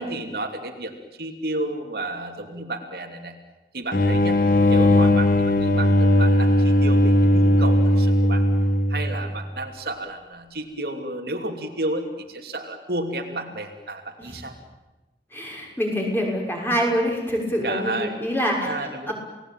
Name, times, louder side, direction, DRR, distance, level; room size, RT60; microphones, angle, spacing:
voice 1, 0.0-3.3 3.7-4.4 4.7-8.4 8.9-14.5 17.6-18.2 18.6-19.1, right 1 dB, 60° right, 4 dB, 2.8 m, -32 dB
sound 1, 3.9-9.3, left 1 dB, 50° left, 2.0 m, -18 dB
voice 2, 15.3-18.7 19.1-19.2, equal, 10° left, 0 dB, 6.1 m, -25 dB
29.5 x 19.0 x 9.0 m, 1.1 s
head